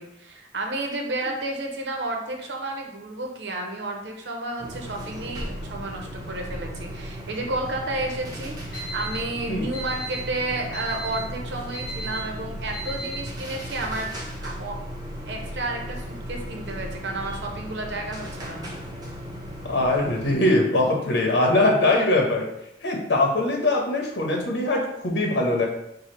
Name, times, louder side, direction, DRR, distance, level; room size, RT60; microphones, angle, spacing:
voice 1, 0.0-14.1 14.4-14.8 15.3-18.7, right 2 dB, 75° right, 2 dB, 0.8 m, -31 dB
sound 1, 4.6-20.3, equal, 25° right, 0.8 m, -36 dB
Alarm, 8.7-13.5, right 2 dB, 60° left, 1.1 m, -37 dB
voice 2, 19.6-22.5 22.8-25.7, left 2 dB, 90° left, 0 dB, 0.9 m, -22 dB
4.9 x 2.3 x 4.4 m, 0.82 s
head